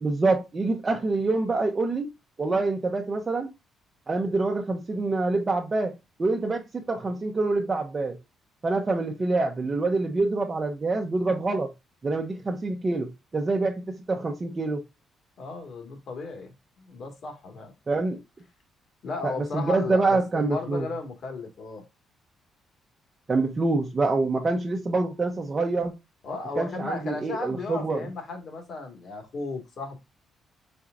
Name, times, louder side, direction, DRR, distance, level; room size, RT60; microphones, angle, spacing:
voice 1, 0.0-2.1 2.4-3.5 4.1-5.9 6.2-8.2 8.6-11.7 12.0-14.8 17.9-18.2 19.2-20.9 23.3-25.9 26.6-28.1, right 3 dB, 30° right, 0.8 m, -26 dB
voice 2, 15.4-17.7 19.0-21.8 26.2-30.0, left 3 dB, 60° left, 1.7 m, -35 dB
4.6 x 4.3 x 2.5 m
cardioid pair, 90°, 0 cm